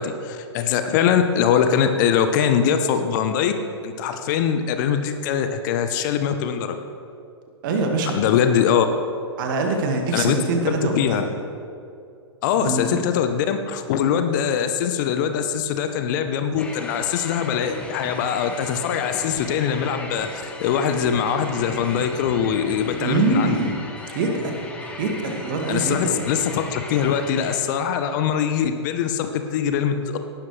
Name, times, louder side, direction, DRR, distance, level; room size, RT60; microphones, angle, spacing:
voice 1, 0.0-3.6 3.8-6.8 8.1-8.9 10.1-10.4 10.7-11.2 12.4-23.6 25.7-30.2, left 8 dB, 40° left, 8 dB, 0.9 m, -22 dB
voice 2, 7.6-8.2 9.4-11.3 12.6-13.0 23.0-23.8 24.1-24.7 25.0-26.2, right 3 dB, 45° right, 2 dB, 2.1 m, -24 dB
sound 1, 16.6-27.6, left 2 dB, 10° left, 1.4 m, -36 dB
18.0 x 12.0 x 3.3 m, 2.5 s
figure-of-eight pair, 110°, 15 cm